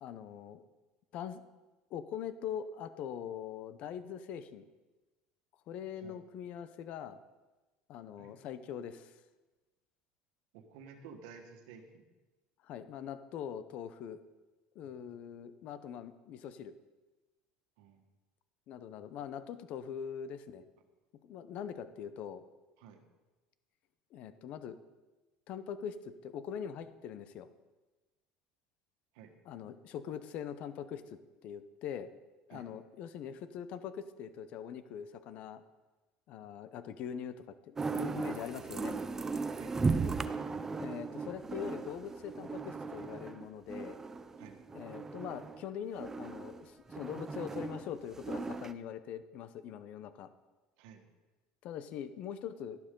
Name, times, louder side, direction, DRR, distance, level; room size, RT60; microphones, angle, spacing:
voice 1, 0.0-0.6 1.1-1.4 1.9-4.6 5.7-7.2 7.9-9.1 12.6-14.2 14.7-16.7 18.7-20.6 21.2-22.4 24.1-24.8 25.5-27.5 29.5-32.1 32.5-35.6 36.3-39.0 40.8-44.0 44.7-50.3 51.6-52.8, left 8 dB, 50° left, 12 dB, 0.8 m, -42 dB
voice 2, 10.5-12.1 14.8-15.0 17.8-18.0 22.8-23.0 29.1-29.3 32.5-32.7 39.5-40.2 44.4-44.6 50.8-51.0, right 6 dB, 80° right, 5 dB, 1.5 m, -53 dB
sound 1, 37.8-45.6 46.0-48.7, right 4 dB, 15° right, 0.4 m, -37 dB
12.0 x 11.5 x 3.8 m, 1.2 s
cardioid pair, 140°, 3 cm